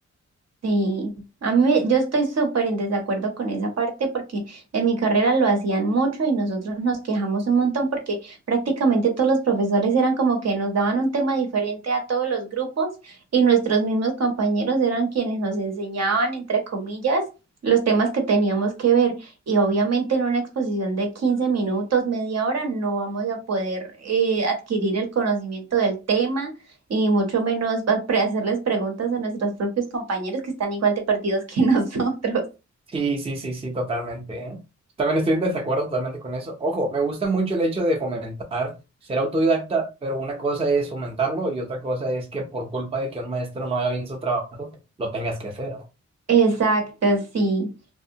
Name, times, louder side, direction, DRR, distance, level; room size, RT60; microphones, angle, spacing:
voice 1, 0.6-1.1 1.4-17.3 17.6-26.5 26.9-32.4 46.3-47.7, right 4 dB, 60° right, 3 dB, 0.8 m, -23 dB
voice 2, 32.9-34.6 35.0-38.7 39.1-44.7 45.0-45.8, right 2 dB, 20° right, 1 dB, 0.4 m, -26 dB
2.7 x 2.0 x 2.6 m, 0.28 s
wide cardioid pair, 175°, 29 cm